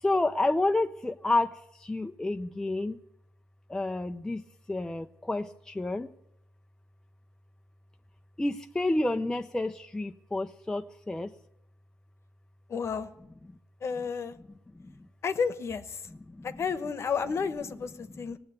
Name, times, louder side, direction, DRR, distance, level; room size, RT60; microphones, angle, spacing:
voice 1, 0.0-3.0 3.7-4.4 4.7-6.1 8.4-11.3 14.8-14.9 16.3-16.5, left 2 dB, 10° left, 6 dB, 0.5 m, -29 dB
voice 2, 12.7-13.1 13.8-14.4 15.2-16.0 16.4-18.4, left 5 dB, 45° left, 12 dB, 1.0 m, -31 dB
17.5 x 7.8 x 9.5 m, 0.79 s
cardioid pair, 115°, 6 cm